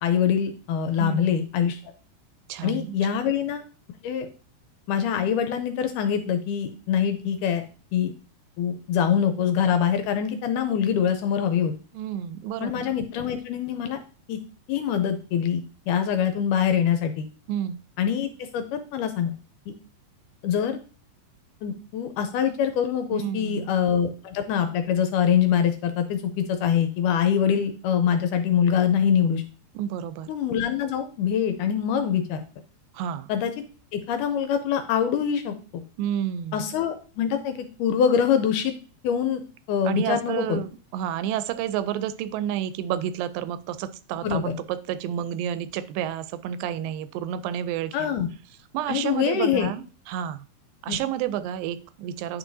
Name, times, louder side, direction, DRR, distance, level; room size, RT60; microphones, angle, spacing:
voice 1, 0.0-1.8 2.6-3.6 4.0-4.3 4.9-7.6 7.9-8.1 8.6-11.7 12.6-14.0 14.3-14.4 14.7-17.3 18.0-19.3 19.7-19.8 20.4-20.8 21.6-29.4 30.3-32.4 33.3-33.5 33.9-35.8 36.5-38.7 39.0-39.4 39.7-40.6 44.2-44.5 47.9-48.3 48.9-49.7 50.9-51.0, left 8 dB, 80° left, 8 dB, 1.9 m, -24 dB
voice 2, 1.0-1.4 2.5-3.0 11.9-12.9 17.5-17.8 23.1-23.7 29.8-30.3 32.9-33.3 36.0-36.7 39.8-48.1 48.7-50.4 50.8-52.4, right 10 dB, 85° right, 13 dB, 2.2 m, -30 dB
9.6 x 4.7 x 2.7 m, 0.37 s
omnidirectional pair, 4.0 m